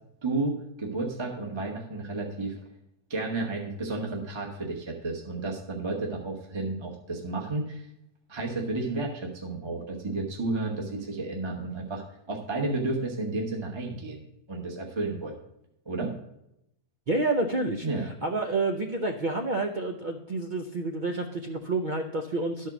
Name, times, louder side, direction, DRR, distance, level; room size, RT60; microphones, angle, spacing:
voice 1, 0.2-2.6 3.1-7.9 8.3-15.4 15.9-16.1 17.8-18.1, right 2 dB, 20° right, 0 dB, 1.0 m, -32 dB
voice 2, 17.1-22.7, right 2 dB, 85° right, 4 dB, 0.4 m, -29 dB
11.5 x 4.6 x 6.0 m, 0.83 s
omnidirectional pair, 1.7 m